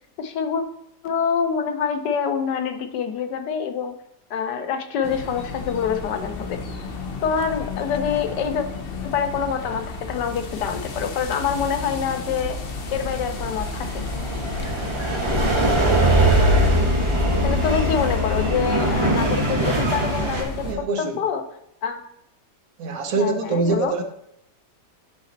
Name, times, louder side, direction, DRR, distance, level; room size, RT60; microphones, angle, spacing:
voice 1, 0.2-0.6 1.0-4.0 4.3-6.6 7.2-8.7 9.0-12.6 12.9-14.0 17.4-21.5 21.8-22.0 23.2-23.9, left 7 dB, 85° left, 7 dB, 1.5 m, -26 dB
sound 1, 5.0-20.7, left 3 dB, 45° left, 0.8 m, -32 dB
sound 2, 12.9-20.4, right 1 dB, 20° right, 1.2 m, -21 dB
voice 2, 20.6-21.2 22.8-24.0, right 3 dB, 60° right, 5 dB, 1.2 m, -24 dB
10.0 x 4.2 x 3.9 m, 0.79 s
omnidirectional pair, 1.8 m